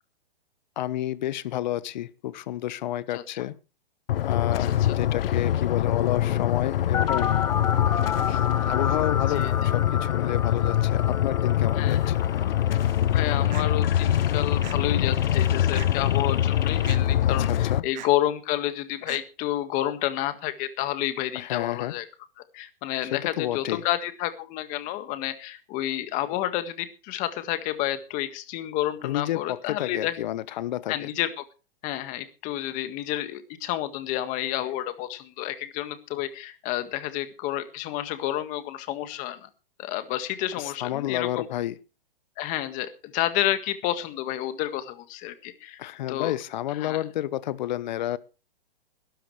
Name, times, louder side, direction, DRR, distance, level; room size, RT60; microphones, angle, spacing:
voice 1, 0.8-3.5 4.2-7.4 8.6-12.2 17.2-17.8 21.3-21.9 23.0-23.8 29.0-31.1 40.6-41.8 45.8-48.2, left 13 dB, 50° left, 17 dB, 1.1 m, -30 dB
sound 1, 4.1-17.8, left 11 dB, 70° left, 0.7 m, -24 dB
sound 2, 6.9-16.9, left 7 dB, 10° left, 0.6 m, -33 dB
voice 2, 11.7-12.1 13.1-22.1 22.5-30.1 30.9-31.4 31.8-39.5 39.8-41.5 42.4-45.8 46.1-46.3 46.7-47.0, left 13 dB, 25° left, 10 dB, 1.7 m, -30 dB
sound 3, 13.5-13.7 14.6-14.8 15.7-16.1 16.8-17.0 17.9-18.1 19.1-19.2, right 13 dB, 50° right, 1.1 m, -40 dB
21.0 x 12.5 x 3.3 m, 0.33 s
hypercardioid pair, 150°, 30 cm